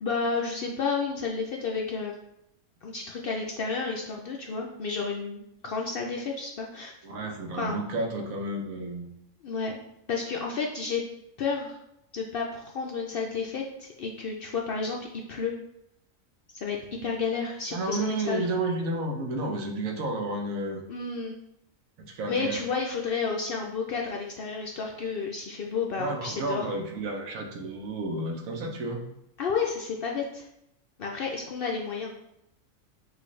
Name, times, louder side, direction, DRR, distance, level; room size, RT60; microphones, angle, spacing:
voice 1, 0.0-2.1 2.8-6.9 7.6-7.8 9.4-9.8 10.1-11.0 11.4-11.8 12.1-15.5 16.5-18.5 20.9-21.3 22.3-26.7 29.4-30.5 31.0-32.1, left 5 dB, 65° left, -1 dB, 0.6 m, -31 dB
voice 2, 7.0-9.1 17.0-17.1 17.7-20.8 22.0-22.6 26.0-29.0, right 2 dB, 85° right, 2 dB, 1.2 m, -31 dB
6.2 x 2.5 x 3.1 m, 0.82 s
omnidirectional pair, 1.4 m